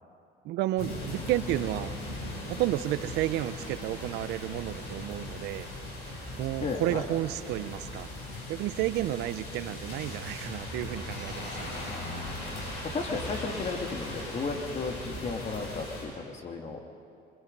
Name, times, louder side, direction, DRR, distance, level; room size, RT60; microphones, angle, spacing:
voice 1, 0.4-1.9 2.5-5.7 6.4-8.1 8.5-11.7, right 14 dB, 85° right, 14 dB, 0.7 m, -31 dB
sound 1, 0.8-16.0, left 1 dB, 75° left, 7.1 m, -39 dB
voice 2, 6.6-7.1 12.6-17.0, left 4 dB, 45° left, 3 dB, 2.4 m, -34 dB
23.5 x 23.5 x 5.4 m, 2.6 s
cardioid pair, 110°, 17 cm